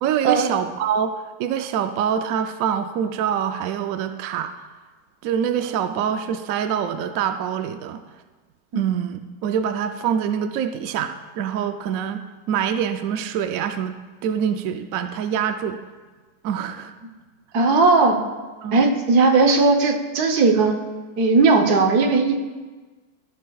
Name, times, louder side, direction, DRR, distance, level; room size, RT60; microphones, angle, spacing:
voice 1, 0.0-4.5 5.2-8.0 8.7-15.8 16.4-16.9 18.6-18.8, right 8 dB, 75° right, 8 dB, 0.7 m, -25 dB
voice 2, 17.5-18.2 18.7-20.7 21.2-22.4, right 3 dB, 60° right, 4 dB, 1.4 m, -17 dB
14.5 x 12.0 x 2.3 m, 1.3 s
omnidirectional pair, 2.0 m